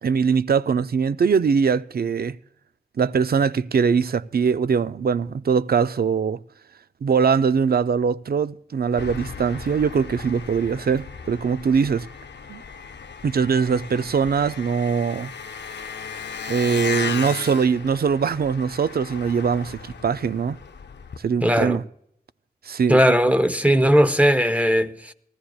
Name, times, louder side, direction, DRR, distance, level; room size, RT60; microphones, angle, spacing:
voice 1, 0.0-2.4 3.0-6.4 7.0-12.1 12.5-12.6 13.2-15.3 16.5-20.6 21.2-21.8 22.6-23.0, right 6 dB, 60° right, 0.4 m, -22 dB
Engine, 9.0-21.2, left 6 dB, 85° left, 0.6 m, -36 dB
voice 2, 21.4-21.8 22.9-25.1, equal, 10° right, 0.7 m, -18 dB
19.0 x 14.5 x 2.3 m
cardioid pair, 50°, 18 cm